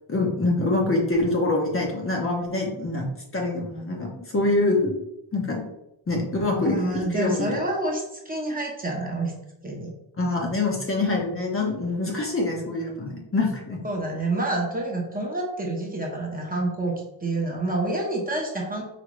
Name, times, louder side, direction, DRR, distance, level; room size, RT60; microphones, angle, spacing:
voice 1, 0.1-3.1 3.3-5.0 5.3-5.6 6.1-7.5 10.2-13.8, left 2 dB, 30° left, -1 dB, 0.9 m, -25 dB
voice 2, 6.5-9.3 9.6-9.9 13.8-16.9 17.2-18.8, right 2 dB, 20° right, -1 dB, 0.9 m, -28 dB
5.0 x 2.8 x 3.1 m, 0.85 s
cardioid pair, 100°, 47 cm